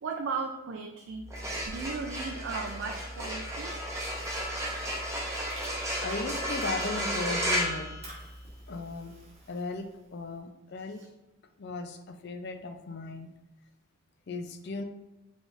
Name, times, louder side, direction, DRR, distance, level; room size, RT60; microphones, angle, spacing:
voice 1, 0.0-1.3 1.7-3.8 4.2-4.4, right 4 dB, 65° right, 4 dB, 0.4 m, -36 dB
sound 1, 1.2-8.7, equal, 15° right, 0.7 m, -33 dB
voice 2, 1.3-1.6 4.7-5.0 5.9-8.0 8.7-9.1 9.5-11.0 11.6-13.3 14.3-14.8, left 3 dB, 55° left, 7 dB, 0.4 m, -37 dB
Fire, 3.4-7.2 7.5-10.3, right 1 dB, 30° right, 1.3 m, -51 dB
4.9 x 3.9 x 2.5 m, 1.0 s
head